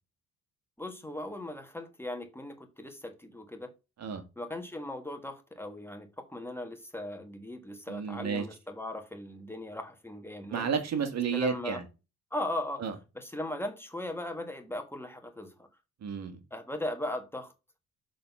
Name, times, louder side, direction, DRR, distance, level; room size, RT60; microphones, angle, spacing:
voice 1, 0.8-3.7 4.4-10.7 11.3-11.8 12.3-12.8 13.1-15.5 16.5-17.5, left 1 dB, 10° left, 1.4 m, -38 dB
voice 2, 7.9-8.4 10.5-11.8 12.8-12.9 16.0-16.4, right 7 dB, 60° right, 1.6 m, -31 dB
6.8 x 3.8 x 5.4 m
cardioid pair, 90°, 30 cm